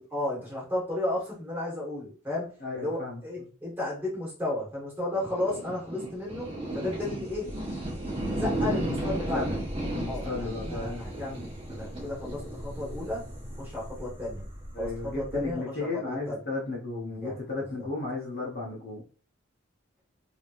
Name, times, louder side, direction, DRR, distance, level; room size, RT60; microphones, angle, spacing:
voice 1, 0.1-7.5 8.3-9.5 10.0-13.3 13.6-14.4 14.8-16.4 17.2-17.3 17.8-17.9, left 1 dB, 10° right, -6 dB, 1.4 m, -33 dB
voice 2, 2.6-3.2 9.2-9.4 9.9-11.0 14.7-19.0, left 3 dB, 45° left, -2 dB, 0.8 m, -34 dB
sound 1, 5.1-15.5, right 1 dB, 30° right, 1.1 m, -34 dB
3.2 x 2.8 x 2.5 m, 0.40 s
head